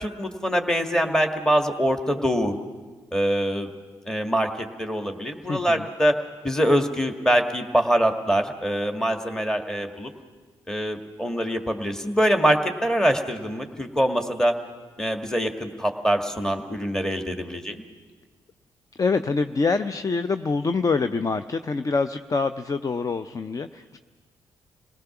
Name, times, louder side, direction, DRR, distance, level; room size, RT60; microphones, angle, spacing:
voice 1, 0.0-2.5 3.1-3.7 4.1-6.2 6.4-10.1 10.7-14.6 15.0-17.8, equal, 5° left, 4 dB, 1.7 m, -24 dB
voice 2, 5.5-5.9 19.0-24.0, left 4 dB, 35° left, 10 dB, 0.6 m, -25 dB
27.0 x 18.0 x 5.9 m, 1.4 s
hypercardioid pair, 50°, 10 cm